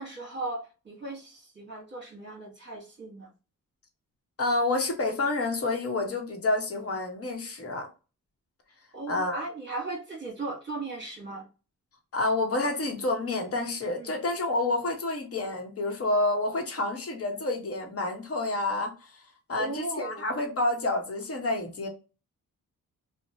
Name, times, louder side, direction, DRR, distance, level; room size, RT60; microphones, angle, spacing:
voice 1, 0.0-3.3 8.9-11.4 14.0-14.2 19.6-20.3, right 2 dB, 35° right, -3 dB, 1.2 m, -37 dB
voice 2, 4.4-7.9 9.1-9.4 12.1-19.1 19.5-21.9, left 2 dB, 45° left, 3 dB, 1.0 m, -29 dB
2.8 x 2.1 x 2.7 m, 0.32 s
cardioid pair, 70°, 33 cm